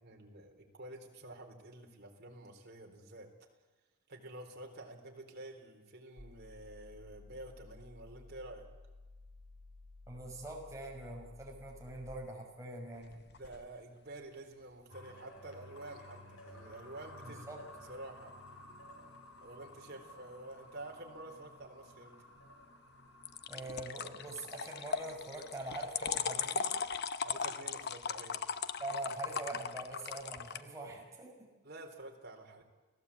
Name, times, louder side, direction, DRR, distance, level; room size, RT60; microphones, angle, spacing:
voice 1, 0.0-3.3 4.1-8.7 13.3-17.5 17.9-18.4 19.4-22.1 23.5-23.7 24.0-24.1 27.2-28.4 31.6-32.6, right 2 dB, 50° right, 2 dB, 3.9 m, -49 dB
sound 1, 6.2-12.1, left 2 dB, 30° left, 3.2 m, -55 dB
voice 2, 10.1-13.2 17.2-17.6 23.5-26.7 28.8-31.5, right 2 dB, 15° right, 0 dB, 5.7 m, -44 dB
sound 2, 13.0-13.6 23.2-30.6, left 6 dB, 50° left, 0.9 m, -38 dB
sound 3, 14.9-26.9, left 1 dB, 80° left, 4.3 m, -55 dB
29.5 x 17.5 x 8.5 m, 1.2 s
head